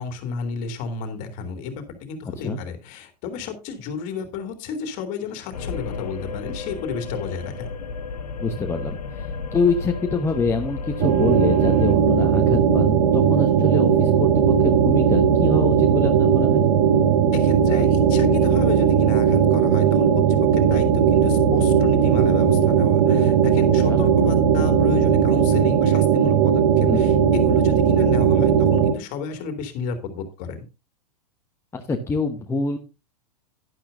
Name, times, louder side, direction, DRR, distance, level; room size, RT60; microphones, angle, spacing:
voice 1, 0.0-7.7 17.3-30.7, left 5 dB, 40° left, 6 dB, 2.7 m, -32 dB
sound 1, 5.5-11.9, left 4 dB, 65° left, 1.6 m, -32 dB
voice 2, 8.4-16.7 23.9-24.0 26.9-27.0 31.7-32.8, left 4 dB, 10° left, 3 dB, 1.1 m, -26 dB
sound 2, 11.0-28.9, right 7 dB, 45° right, 1.6 m, -18 dB
12.0 x 11.0 x 2.6 m, 0.28 s
figure-of-eight pair, 100°, 21 cm